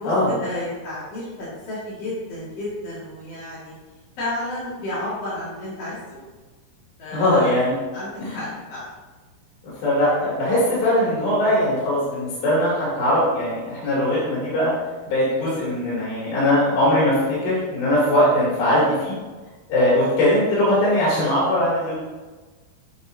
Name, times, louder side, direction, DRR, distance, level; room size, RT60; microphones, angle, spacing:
voice 1, 0.0-3.7 4.2-6.3 7.0-7.5 7.9-8.9 10.7-10.9, left 1 dB, 45° left, -9 dB, 2.5 m, -32 dB
voice 2, 7.1-7.8 8.2-8.4 9.8-14.7 15.1-19.1 19.7-22.0, left 1 dB, 70° left, -9 dB, 5.4 m, -20 dB
10.5 x 8.2 x 2.8 m, 1.3 s
omnidirectional pair, 5.2 m